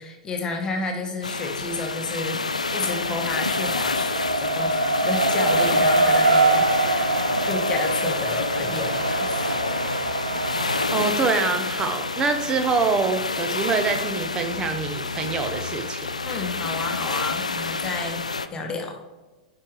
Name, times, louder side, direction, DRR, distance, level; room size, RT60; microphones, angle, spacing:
voice 1, 0.0-2.4 2.7-7.1 7.5-9.6 16.2-19.0, left 3 dB, 20° left, 2 dB, 1.1 m, -31 dB
sound 1, 1.2-18.5, left 4 dB, 85° left, 0.4 m, -28 dB
Race car auto racing, 2.7-10.9, right 2 dB, 90° right, 0.5 m, -24 dB
voice 2, 10.9-16.1, right 4 dB, 20° right, 7 dB, 0.9 m, -25 dB
10.0 x 4.8 x 3.2 m, 1.2 s
figure-of-eight pair, 100°, 4 cm